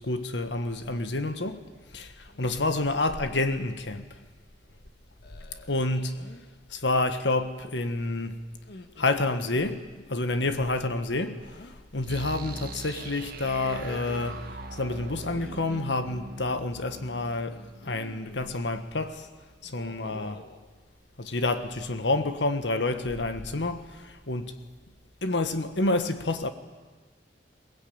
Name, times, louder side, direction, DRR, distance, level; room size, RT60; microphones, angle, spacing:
voice 1, 0.0-1.7 1.9-2.1 2.4-4.2 5.7-6.2 6.7-8.4 9.0-11.5 11.9-14.4 14.7-19.3 19.6-20.4 21.2-24.5 25.2-26.5, left 2 dB, 90° left, 1.5 m, -28 dB
sound 1, 2.3-2.6 3.0-3.5 5.2-6.5 8.5-9.9 11.4-11.8 13.0-14.5 15.2-16.0 17.5-18.6 19.6-20.6, left 2 dB, 65° left, 1.7 m, -48 dB
sound 2, 12.0-18.8, right 2 dB, 55° right, 1.4 m, -42 dB
22.0 x 19.0 x 8.8 m
head